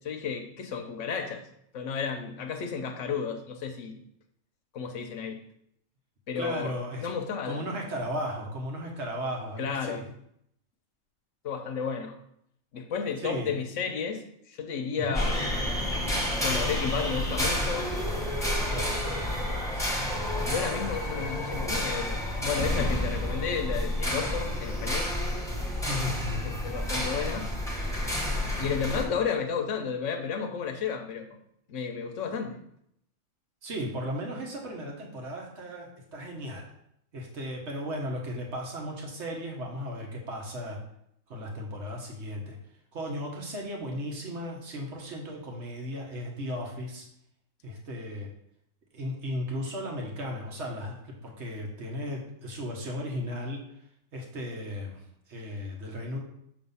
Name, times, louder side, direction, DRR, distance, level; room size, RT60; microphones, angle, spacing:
voice 1, 0.0-1.4 1.7-3.9 4.7-5.4 6.3-7.7 9.6-10.0 11.4-12.2 12.7-15.5 16.4-17.9 20.5-25.1 26.4-27.5 28.6-31.4 31.7-32.6, left 6 dB, 65° left, 6 dB, 1.1 m, -32 dB
voice 2, 6.4-7.1 7.5-10.0 13.2-13.5 15.1-15.2 18.7-19.2 25.9-26.4 33.6-36.6 37.1-40.8 41.3-42.6 42.9-47.0 47.6-48.3 48.9-53.6 54.1-55.0 55.3-56.2, equal, 55° right, 0 dB, 1.6 m, -35 dB
sound 1, 15.1-29.0, left 1 dB, ahead, 1.1 m, -30 dB
6.8 x 3.5 x 5.5 m, 0.74 s
omnidirectional pair, 1.4 m